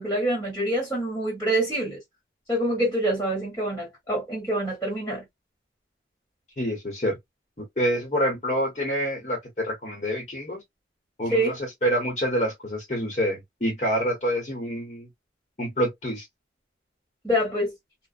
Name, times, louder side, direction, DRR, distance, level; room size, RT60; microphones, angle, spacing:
voice 1, 0.0-2.0 2.5-5.2 11.3-11.5 17.2-17.7, right 1 dB, 10° left, 1.3 m, -26 dB
voice 2, 6.6-7.2 7.6-10.6 11.2-15.1 15.6-16.2, equal, 35° left, 0.9 m, -27 dB
2.4 x 2.1 x 2.5 m
head